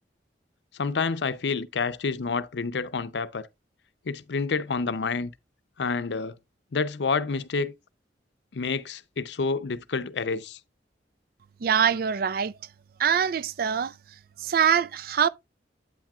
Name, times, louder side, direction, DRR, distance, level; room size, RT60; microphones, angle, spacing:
voice 1, 0.8-3.5 4.1-5.3 5.8-6.4 6.7-7.7 8.5-10.6, left 4 dB, 80° left, 0.6 m, -28 dB
voice 2, 11.6-12.5 13.0-13.9 14.4-15.3, right 7 dB, 55° right, 0.4 m, -23 dB
8.8 x 8.3 x 2.3 m
head